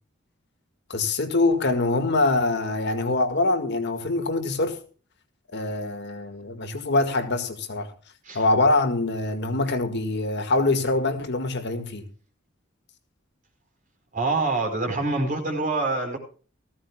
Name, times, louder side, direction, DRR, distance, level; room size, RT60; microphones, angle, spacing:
voice 1, 0.9-4.8 5.5-7.9 8.3-12.1, left 2 dB, 60° left, 1.9 m, -24 dB
voice 2, 14.1-16.2, right 3 dB, 40° right, 4.4 m, -25 dB
18.0 x 15.0 x 2.3 m
head